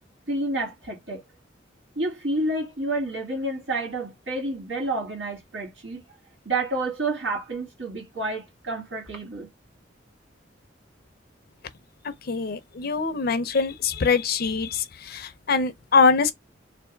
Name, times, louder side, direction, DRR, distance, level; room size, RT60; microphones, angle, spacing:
voice 1, 0.3-1.2 2.0-6.0 6.5-9.5, right 2 dB, 85° right, 1.8 m, -29 dB
voice 2, 12.3-16.3, left 4 dB, 55° left, 0.6 m, -23 dB
3.4 x 2.5 x 4.4 m
head